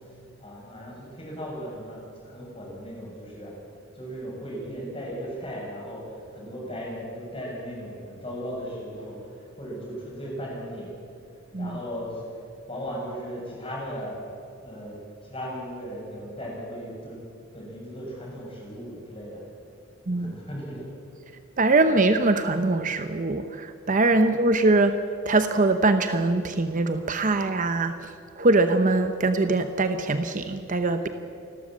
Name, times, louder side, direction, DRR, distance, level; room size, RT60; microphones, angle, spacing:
voice 1, 0.4-3.5 3.9-10.9 11.6-12.3 12.7-14.2 14.6-17.2 17.5-19.4 20.1-20.9, equal, 25° left, -3 dB, 7.0 m, -37 dB
voice 2, 21.6-25.0 25.2-27.9 28.4-31.1, right 2 dB, 40° right, 8 dB, 0.8 m, -22 dB
29.0 x 12.5 x 7.5 m, 2.5 s
head